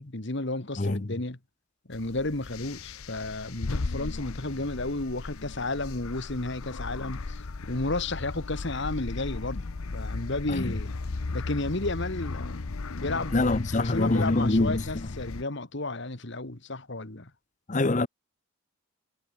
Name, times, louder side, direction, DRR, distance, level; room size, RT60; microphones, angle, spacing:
voice 1, 0.0-1.4 1.9-9.7 9.9-10.9 11.3-12.6 12.9-17.3, left 2 dB, 55° left, 1.8 m, -32 dB
voice 2, 0.8-1.1 10.5-10.7 13.3-14.8 17.7-18.1, left 2 dB, 35° left, 0.7 m, -25 dB
sound 1, 1.9-15.4, left 3 dB, 80° left, 0.8 m, -36 dB
head